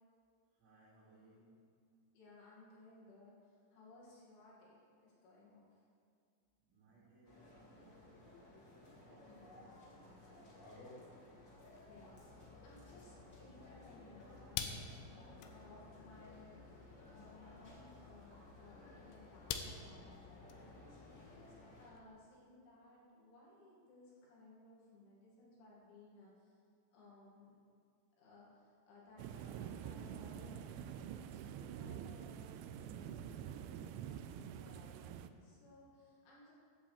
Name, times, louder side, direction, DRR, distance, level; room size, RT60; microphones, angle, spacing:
voice 1, 0.4-2.0 6.6-11.2, right 1 dB, 65° right, -11 dB, 4.7 m, -67 dB
voice 2, 2.1-5.8 9.3-9.4 11.9-26.6 26.9-27.5 28.2-36.5, left 2 dB, 70° left, -6 dB, 4.5 m, -61 dB
sound 1, 7.2-21.9, left 1 dB, 40° left, 1.6 m, -58 dB
sound 2, 11.6-22.0, left 8 dB, 85° left, 2.9 m, -50 dB
sound 3, 29.2-35.3, right 9 dB, 85° right, 2.7 m, -47 dB
14.5 x 11.5 x 3.4 m, 2.2 s
omnidirectional pair, 5.9 m